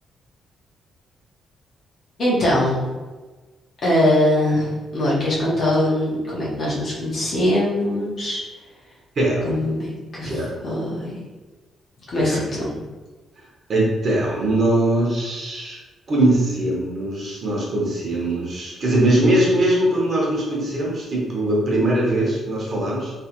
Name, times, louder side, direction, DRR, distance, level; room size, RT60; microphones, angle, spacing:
voice 1, 2.2-2.8 3.8-8.4 9.4-11.1 12.1-12.9, left 1 dB, 45° left, -6 dB, 1.3 m, -22 dB
voice 2, 9.2-9.5 10.2-10.5 12.2-12.4 13.7-15.8 16.1-23.1, right 1 dB, 45° right, -4 dB, 1.1 m, -21 dB
3.4 x 3.1 x 3.0 m, 1.3 s
cardioid pair, 130°, 0 cm